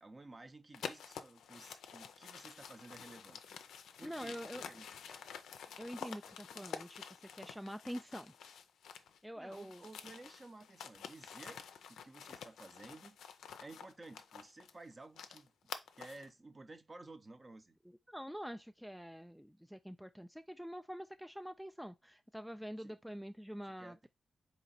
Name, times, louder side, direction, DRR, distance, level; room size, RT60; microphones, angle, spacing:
voice 1, 0.0-3.6 4.0-5.3 9.3-11.6 11.9-13.2 13.6-15.5 15.9-17.8 22.8-23.0 23.8-24.1, right 2 dB, 35° right, 0.7 m, -54 dB
sound 1, 0.7-9.2 9.5-16.3, left 7 dB, 85° left, 0.4 m, -49 dB
voice 2, 4.0-4.7 5.8-8.3 9.2-9.9 17.9-24.1, equal, ahead, 0.3 m, -46 dB
3.9 x 3.0 x 4.1 m
supercardioid pair, 50°, 0 cm